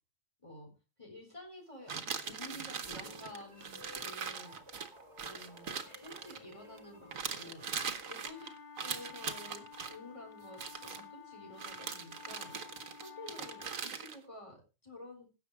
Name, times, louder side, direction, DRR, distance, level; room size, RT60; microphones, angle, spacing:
voice 1, 0.4-0.7 1.0-4.6 5.2-7.7 8.1-8.5 8.8-12.5 13.0-15.3, left 1 dB, 25° left, 1 dB, 4.3 m, -51 dB
sound 1, 1.9-6.8 7.1-10.0 10.5-11.0 11.6-14.2, right 6 dB, 85° right, 1.6 m, -41 dB
sound 2, 2.9-8.3, left 1 dB, 20° right, 3.1 m, -55 dB
sound 3, 8.3-13.8, left 8 dB, 40° left, 1.4 m, -52 dB
16.5 x 6.9 x 4.7 m, 0.31 s
omnidirectional pair, 1.4 m